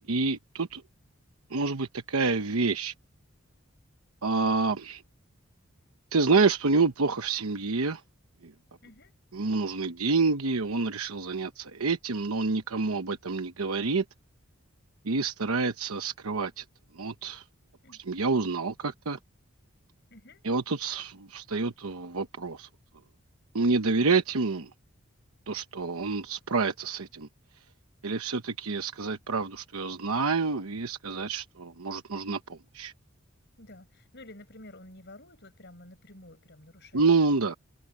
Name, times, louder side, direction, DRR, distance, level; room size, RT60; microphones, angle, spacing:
voice 1, 0.1-0.8 1.5-2.9 4.2-5.0 6.1-8.0 9.3-14.0 15.0-16.6 17.0-17.4 18.0-19.2 20.4-22.7 23.5-24.7 25.5-27.3 28.0-32.9 36.9-37.5, right 4 dB, 85° right, 1.0 m, -28 dB
voice 2, 8.8-9.1 17.8-18.0 20.1-20.4 33.6-37.5, left 1 dB, 50° left, 6.9 m, -51 dB
head